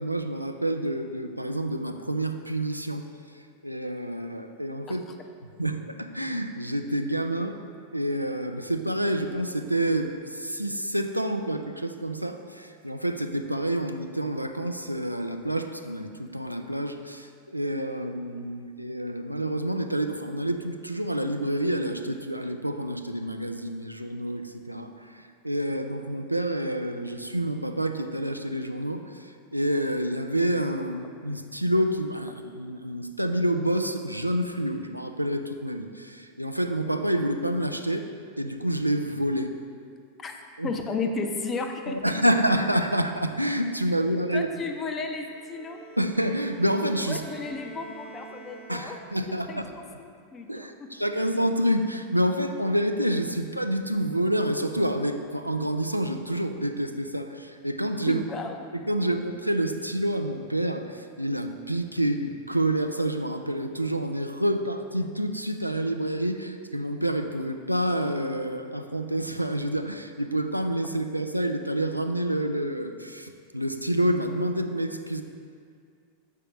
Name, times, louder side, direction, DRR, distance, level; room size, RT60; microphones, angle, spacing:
voice 1, 0.0-3.0 3.6-5.0 5.4-7.6 7.9-38.1 38.4-39.5 40.6-40.7 41.9-44.5 46.0-47.2 48.7-49.5 50.5-58.2 58.9-75.2, right 1 dB, 90° right, 6 dB, 0.3 m, -28 dB
voice 2, 40.6-42.0 44.3-45.8 47.1-49.0 49.5-51.0 58.1-59.1, left 4 dB, 25° left, 4 dB, 0.6 m, -34 dB
Bowed string instrument, 45.2-49.4, right 4 dB, 35° right, 0.7 m, -47 dB
7.5 x 4.9 x 3.3 m, 2.2 s
figure-of-eight pair, 90°, 0 cm